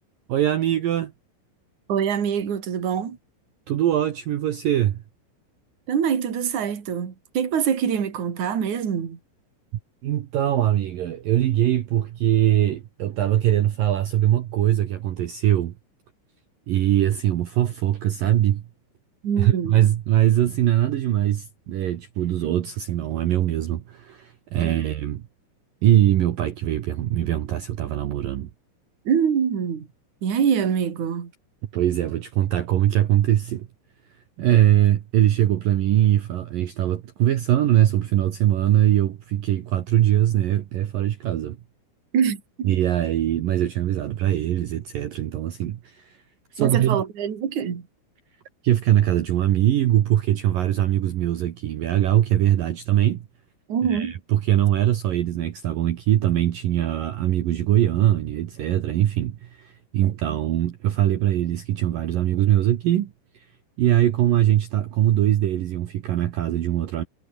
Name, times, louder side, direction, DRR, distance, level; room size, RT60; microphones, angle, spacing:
voice 1, 0.3-1.1 3.7-5.0 10.0-15.7 16.7-18.7 19.4-25.2 25.8-28.5 31.7-33.7 34.4-41.6 42.6-46.2 46.5-47.0 48.6-53.3 53.9-63.5 63.8-67.0, right 12 dB, 75° right, 2.0 m, -22 dB
voice 2, 1.9-3.2 5.9-9.2 19.2-19.7 24.6-24.9 29.1-29.9 30.2-31.3 42.1-42.7 46.6-47.9 53.7-54.1, right 7 dB, 40° right, 4.0 m, -24 dB
omnidirectional pair, 6.0 m